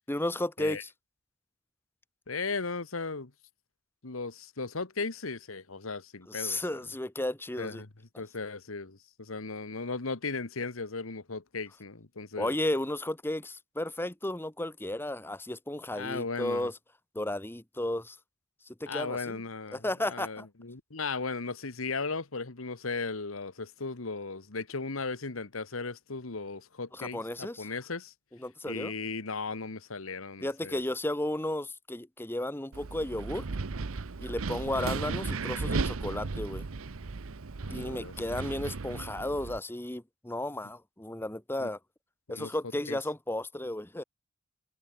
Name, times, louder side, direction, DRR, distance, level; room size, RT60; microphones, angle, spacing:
voice 1, 0.1-0.9 6.3-7.8 12.4-16.7 17.1-18.2 18.7-19.4 19.7-20.5 26.9-27.7 28.4-28.9 30.4-33.4 34.2-36.6 37.7-41.8 42.3-44.0, left 1 dB, 10° left, 1.1 m, -33 dB
voice 2, 2.3-3.3 4.0-6.6 7.6-7.9 8.2-12.6 15.9-16.7 18.9-28.1 28.7-30.8 34.8-34.9 37.6-38.4 41.6-41.7 42.3-42.5 42.9-43.0, left 4 dB, 80° left, 1.5 m, -36 dB
Wind, 32.7-39.6, right 4 dB, 80° right, 0.8 m, -35 dB
head